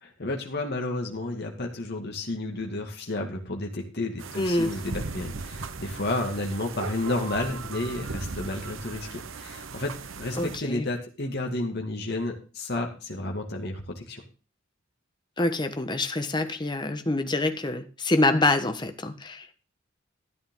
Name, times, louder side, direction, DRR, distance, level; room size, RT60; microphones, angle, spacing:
voice 1, 0.0-14.2, left 2 dB, 55° left, 1 dB, 2.1 m, -31 dB
sound 1, 4.2-10.6, right 4 dB, 80° right, 1.0 m, -38 dB
voice 2, 4.3-4.7 10.4-10.9 15.4-19.5, left 2 dB, 20° left, 8 dB, 1.2 m, -26 dB
12.5 x 10.5 x 3.8 m, 0.35 s
head